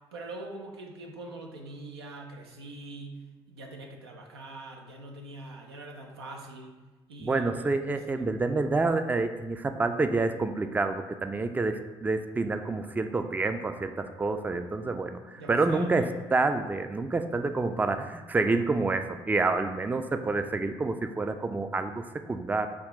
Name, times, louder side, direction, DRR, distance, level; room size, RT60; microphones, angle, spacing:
voice 1, 0.1-3.2 3.5-6.7 7.1-7.4 15.4-15.9, right 2 dB, 85° right, 1 dB, 0.5 m, -43 dB
voice 2, 7.2-22.7, right 3 dB, 15° right, 8 dB, 0.3 m, -28 dB
5.4 x 2.3 x 3.8 m, 1.2 s
hypercardioid pair, 50°, 13 cm